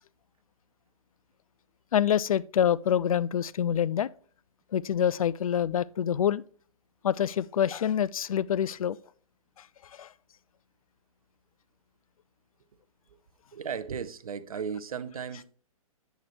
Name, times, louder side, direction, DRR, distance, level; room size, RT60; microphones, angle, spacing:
voice 1, 1.9-4.1 4.7-6.4 7.0-9.0 9.9-10.1, left 9 dB, 70° left, 0.4 m, -26 dB
voice 2, 13.5-15.5, right 7 dB, 75° right, 0.7 m, -35 dB
8.0 x 6.6 x 2.9 m
figure-of-eight pair, 125°, 19 cm